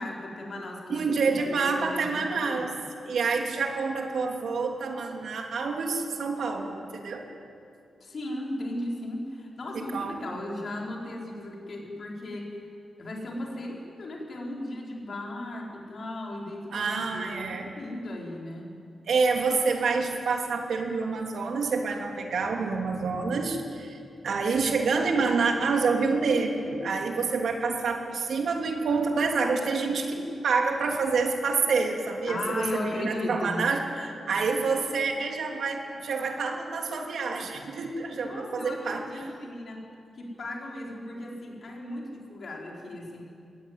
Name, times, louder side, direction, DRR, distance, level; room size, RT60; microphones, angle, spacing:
voice 1, 0.0-2.8 8.0-12.6 13.0-18.8 32.3-33.6 38.2-39.8 40.2-43.2, left 1 dB, 45° left, -1 dB, 4.2 m, -36 dB
voice 2, 0.9-2.8 3.0-7.2 9.7-10.4 16.7-17.7 19.1-24.0 24.2-39.3, right 4 dB, 65° right, 2 dB, 3.0 m, -27 dB
23.5 x 17.0 x 9.5 m, 2.4 s
wide cardioid pair, 165°, 0 cm